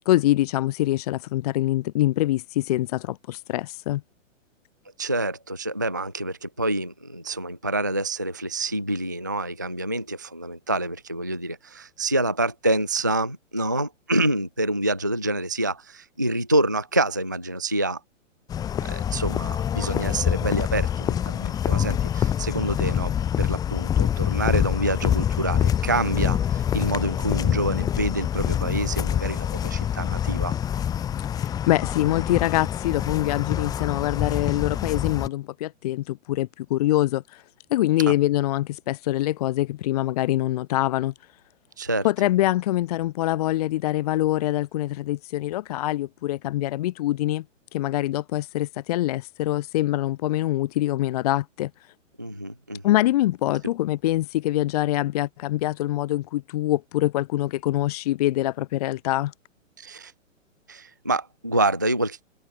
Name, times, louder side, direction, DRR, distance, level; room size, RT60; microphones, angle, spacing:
voice 1, 0.1-4.0 31.4-37.4 37.7-41.1 42.0-47.4 47.7-51.7 52.8-59.3, left 15 dB, 30° left, 0.9 m, -24 dB
voice 2, 5.0-18.0 18.9-23.1 23.4-30.6 38.0-38.1 41.8-42.1 52.2-52.8 59.8-60.1 60.7-62.2, right 1 dB, 15° right, 0.3 m, -27 dB
sound 1, 18.5-35.3, left 9 dB, 10° left, 1.2 m, -26 dB
hypercardioid pair, 160°, 39 cm